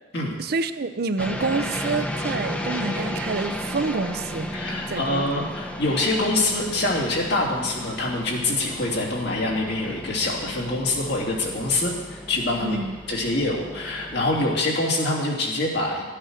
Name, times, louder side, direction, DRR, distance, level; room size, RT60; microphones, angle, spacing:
voice 1, 0.4-4.5 4.9-5.5 12.6-13.0, right 3 dB, 55° right, 10 dB, 0.6 m, -28 dB
sound 1, 1.2-14.5, equal, 5° left, 0.9 m, -34 dB
voice 2, 4.5-12.8 13.1-16.0, left 2 dB, 65° left, -2 dB, 2.9 m, -25 dB
14.0 x 8.9 x 6.5 m, 1.3 s
head